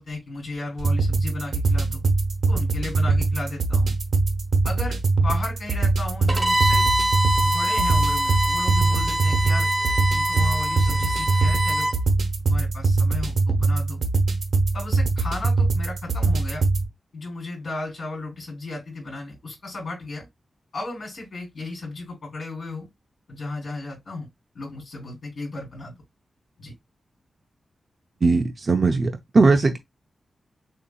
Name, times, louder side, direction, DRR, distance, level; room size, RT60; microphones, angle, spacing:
voice 1, 0.0-2.0 2.5-3.9 4.6-6.9 7.4-9.7 10.1-11.9 12.5-14.0 14.7-16.6 17.1-20.3 20.7-22.9 23.3-24.3 24.5-25.9 26.6-26.7, left 2 dB, 65° left, 3.4 m, -34 dB
sound 1, 0.8-16.8, right 3 dB, 80° right, 1.1 m, -22 dB
Bowed string instrument, 6.3-12.0, right 1 dB, 20° right, 0.9 m, -24 dB
voice 2, 28.2-29.8, right 3 dB, 40° right, 0.6 m, -19 dB
6.6 x 2.7 x 2.3 m
wide cardioid pair, 120°, 0 cm